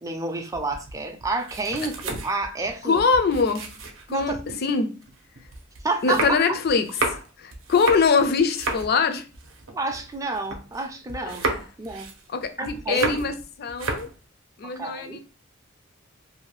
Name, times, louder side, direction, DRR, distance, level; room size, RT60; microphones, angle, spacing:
voice 1, 0.0-3.0 4.1-4.4 5.8-6.6 9.7-12.1 12.6-13.3 14.6-15.2, right 3 dB, 15° right, 0.4 m, -29 dB
sound 1, 0.5-4.6 5.0-10.8 11.1-13.4 13.7-14.2, right 2 dB, 65° right, 0.6 m, -32 dB
voice 2, 2.8-3.7 4.1-4.4 4.6-4.9 6.0-9.3 12.3-14.1 14.6-15.2, left 5 dB, 50° left, 0.4 m, -23 dB
2.6 x 2.2 x 3.1 m
head